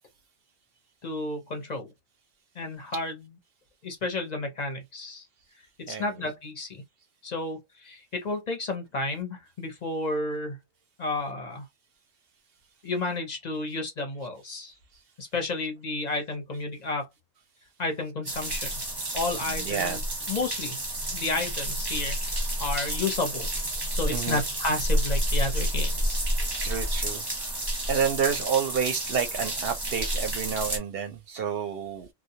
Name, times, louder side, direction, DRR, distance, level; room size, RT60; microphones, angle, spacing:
voice 1, 1.0-1.9 2.5-3.4 3.8-5.3 5.8-6.8 7.2-10.6 11.0-11.6 12.8-14.8 15.2-17.1 17.8-18.8 19.1-20.0 20.3-20.8 21.1-23.5 23.9-26.2, left 2 dB, 45° left, 0.6 m, -31 dB
voice 2, 5.9-6.4 19.5-20.0 22.6-22.9 24.1-24.4 26.6-27.6 27.9-32.1, right 7 dB, 60° right, 0.6 m, -30 dB
sound 1, 18.3-30.8, right 1 dB, 25° right, 0.6 m, -30 dB
2.3 x 2.0 x 2.7 m
omnidirectional pair, 1.3 m